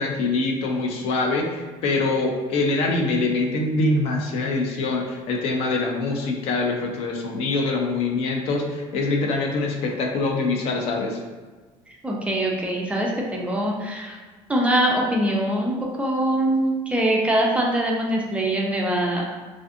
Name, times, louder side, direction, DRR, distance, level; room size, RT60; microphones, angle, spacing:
voice 1, 0.0-11.2, left 3 dB, 60° left, 1 dB, 0.4 m, -24 dB
voice 2, 11.9-14.2 14.5-19.2, right 1 dB, 10° right, -2 dB, 0.3 m, -23 dB
2.4 x 2.4 x 2.5 m, 1.4 s
cardioid pair, 135°, 12 cm